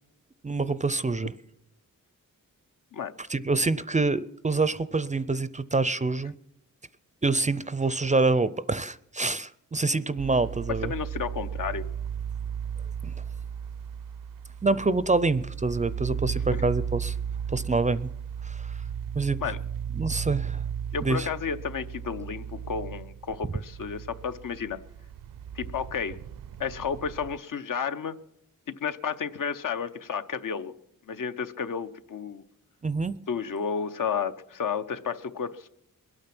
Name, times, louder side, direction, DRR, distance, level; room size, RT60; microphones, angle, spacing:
voice 1, 0.4-1.3 3.2-6.3 7.2-10.9 13.0-13.1 14.6-17.2 17.5-18.1 18.4-18.8 19.1-19.4 20.0-20.6 21.0-21.3 32.8-33.2, right 3 dB, 20° right, 16 dB, 0.4 m, -26 dB
sound 1, 10.2-27.4, right 8 dB, 70° right, 0.5 m, -35 dB
voice 2, 10.8-11.9 16.5-16.7 19.4-19.6 20.9-24.8 25.5-26.2 26.6-28.2 28.7-30.7 31.1-32.4 33.3-35.7, left 6 dB, 65° left, 10 dB, 0.8 m, -32 dB
22.0 x 8.8 x 6.0 m, 0.80 s
wide cardioid pair, 90°, 34 cm